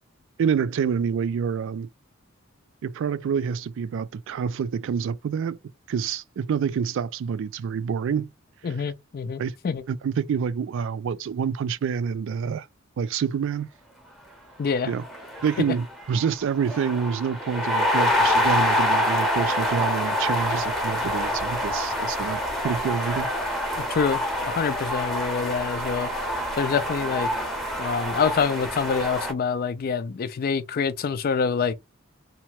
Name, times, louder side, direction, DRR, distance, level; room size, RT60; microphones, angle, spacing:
voice 1, 0.4-1.9 2.8-5.6 5.9-8.3 8.6-8.9 9.4-9.5 9.9-12.7 13.0-13.7 14.9-15.0 15.4-23.3, right 7 dB, 65° right, 0.3 m, -27 dB
voice 2, 8.6-9.8 14.6-14.9 23.8-26.1 26.6-27.3 27.8-31.7, left 6 dB, 45° left, 0.4 m, -26 dB
sound 1, 14.7-14.8 15.0-29.3, left 1 dB, ahead, 0.7 m, -26 dB
2.8 x 2.2 x 2.9 m
head